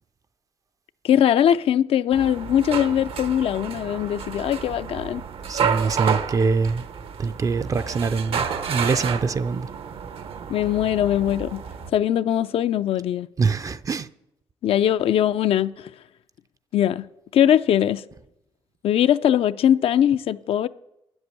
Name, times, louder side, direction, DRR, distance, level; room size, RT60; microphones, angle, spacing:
voice 1, 1.0-5.2 10.5-11.6 11.9-13.3 14.6-15.9 16.7-17.1 17.3-18.0 18.8-20.7, left 10 dB, 70° left, 0.5 m, -21 dB
sound 1, 2.1-11.9, right 7 dB, 70° right, 0.8 m, -30 dB
voice 2, 5.5-6.9 7.2-9.7 13.4-14.1, right 4 dB, 35° right, 0.4 m, -24 dB
10.0 x 8.0 x 8.3 m
cardioid pair, 115°, 10 cm